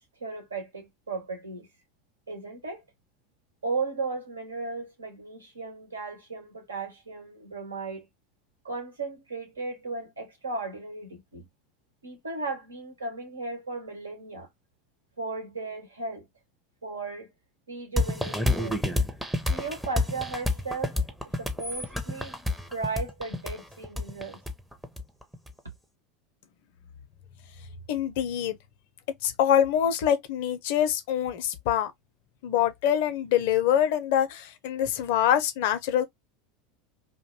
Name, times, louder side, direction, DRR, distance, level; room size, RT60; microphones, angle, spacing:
voice 1, 0.2-1.7 2.3-2.8 3.6-8.0 8.6-11.5 12.0-14.5 15.2-16.3 16.8-17.3 17.7-18.8 19.5-21.0 21.4-22.4 22.7-24.4, right 3 dB, 85° right, 1.1 m, -35 dB
sound 1, 18.0-25.5, left 2 dB, 5° right, 0.6 m, -29 dB
voice 2, 27.9-28.6 29.2-31.9 32.4-36.0, left 10 dB, 60° left, 0.5 m, -25 dB
2.5 x 2.2 x 3.0 m
figure-of-eight pair, 80°, 0 cm